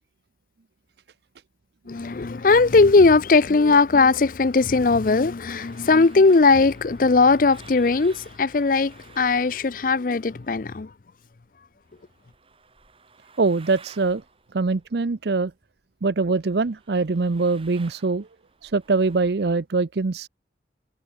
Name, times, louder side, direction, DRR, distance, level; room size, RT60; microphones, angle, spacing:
voice 1, 1.9-10.9, left 3 dB, 50° left, 0.5 m, -18 dB
sound 1, 5.4-10.9 11.2-15.8 16.1-19.5, right 5 dB, 30° right, 3.3 m, -54 dB
voice 2, 13.4-14.2 14.5-15.5 16.0-18.3 18.6-20.3, right 3 dB, 65° right, 0.6 m, -23 dB
head